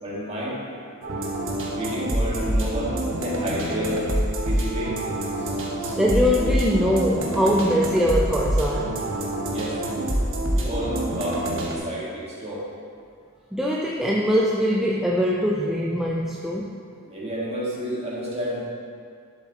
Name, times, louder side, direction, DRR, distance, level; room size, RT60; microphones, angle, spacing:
voice 1, 0.0-0.6 1.2-1.3 1.7-5.0 5.4-5.5 5.8-6.0 9.5-9.9 10.2-12.6 17.1-18.6, equal, 30° right, -5 dB, 1.8 m, -31 dB
sound 1, 1.0-11.8, right 1 dB, 60° right, 1.4 m, -26 dB
voice 2, 6.0-9.0 13.5-16.7, equal, ahead, -4 dB, 0.5 m, -22 dB
11.5 x 7.7 x 3.0 m, 2.3 s
head